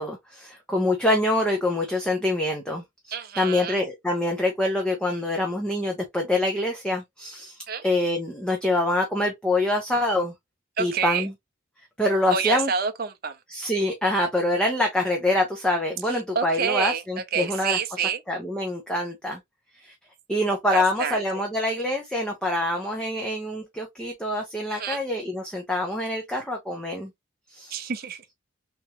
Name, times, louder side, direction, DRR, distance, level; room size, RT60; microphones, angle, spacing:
voice 1, 0.0-10.3 10.8-11.3 12.0-12.7 13.5-17.8 18.3-19.4 19.8-19.9 20.3-27.1 27.5-27.9, left 1 dB, 5° left, 0.7 m, -25 dB
voice 2, 3.1-3.8 7.7-7.8 10.8-11.3 12.3-13.4 16.3-17.0 17.3-18.2 20.7-21.2 24.7-25.0 27.7-28.2, right 6 dB, 50° right, 0.6 m, -27 dB
3.5 x 3.0 x 2.8 m
head